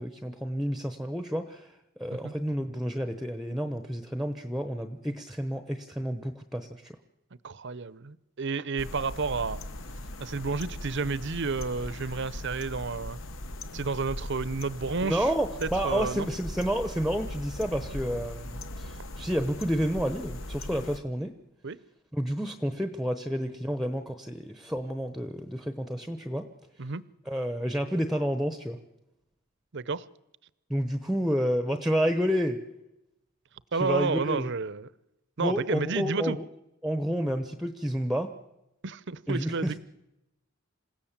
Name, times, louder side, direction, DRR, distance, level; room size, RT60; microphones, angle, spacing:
voice 1, 0.0-1.7 2.0-6.9 15.0-21.3 22.1-26.5 27.3-28.8 30.7-32.6 33.7-34.5 35.4-36.5 36.8-38.3 39.3-39.8, equal, ahead, 8 dB, 0.9 m, -30 dB
voice 2, 7.4-9.6 10.2-13.2 13.7-15.3 15.6-16.3 21.6-21.8 26.8-27.0 29.7-30.0 33.7-34.9 35.4-36.4 38.8-39.8, right 4 dB, 55° right, 18 dB, 0.7 m, -31 dB
sound 1, 8.8-21.0, left 1 dB, 65° left, 1.3 m, -39 dB
27.5 x 16.5 x 7.4 m, 0.90 s
head